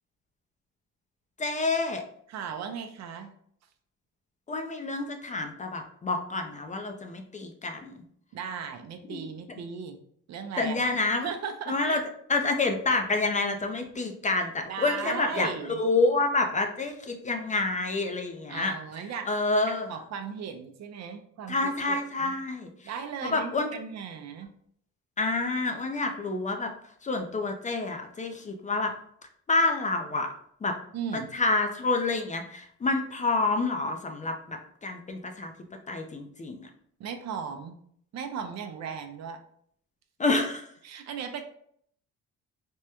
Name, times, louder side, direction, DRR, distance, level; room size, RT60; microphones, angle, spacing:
voice 1, 1.4-2.0 4.5-8.0 9.1-9.2 10.6-11.3 11.7-12.0 12.3-15.5 15.8-18.7 19.3-19.9 21.5-22.7 23.3-23.7 25.2-26.7 27.0-28.9 29.5-30.3 30.6-30.8 31.3-35.5 35.9-36.7 40.2-40.7, left 3 dB, 25° left, 4 dB, 0.4 m, -28 dB
voice 2, 2.3-3.3 8.3-10.0 10.3-10.8 11.2-12.0 14.7-15.8 18.5-19.3 19.7-22.3 22.8-24.5 30.9-31.3 37.0-37.8 38.1-39.4 40.8-41.4, right 6 dB, 60° right, 6 dB, 0.5 m, -37 dB
3.5 x 2.1 x 2.9 m, 0.65 s
cardioid pair, 90°, 30 cm